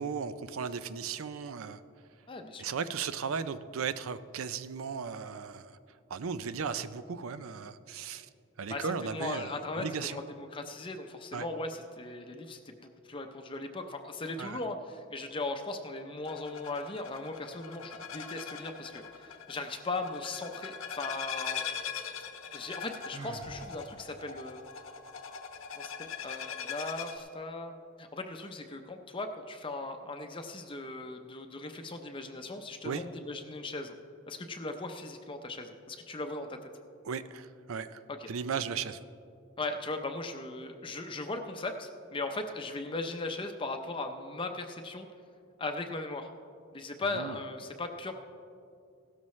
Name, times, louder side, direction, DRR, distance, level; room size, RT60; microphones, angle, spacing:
voice 1, 0.0-1.8 2.6-5.8 6.1-8.3 8.6-10.2 11.3-11.5 14.4-14.6 32.8-33.0 37.0-38.0 38.3-39.0 47.1-47.4, right 6 dB, 90° right, 13 dB, 0.5 m, -36 dB
voice 2, 2.3-2.7 8.7-21.7 22.5-24.6 25.8-33.9 34.3-36.6 38.1-38.3 39.6-45.1 45.6-46.3 46.7-48.1, left 2 dB, 25° left, 5 dB, 0.6 m, -38 dB
sound 1, 16.2-27.2, left 7 dB, 85° left, 1.0 m, -41 dB
Sigh, 23.1-23.6, right 2 dB, 25° right, 0.7 m, -43 dB
16.0 x 12.5 x 3.2 m, 2.5 s
head